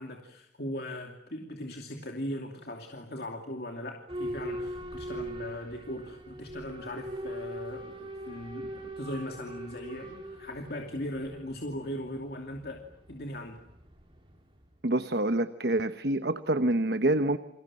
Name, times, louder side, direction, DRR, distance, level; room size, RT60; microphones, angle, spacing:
voice 1, 0.0-13.6, left 1 dB, 55° left, 2 dB, 2.7 m, -39 dB
Boat Water vehicle / Alarm, 4.1-14.7, equal, 30° right, 5.0 m, -41 dB
voice 2, 14.8-17.4, right 1 dB, 65° right, 10 dB, 1.1 m, -26 dB
29.5 x 25.0 x 7.6 m, 0.78 s
head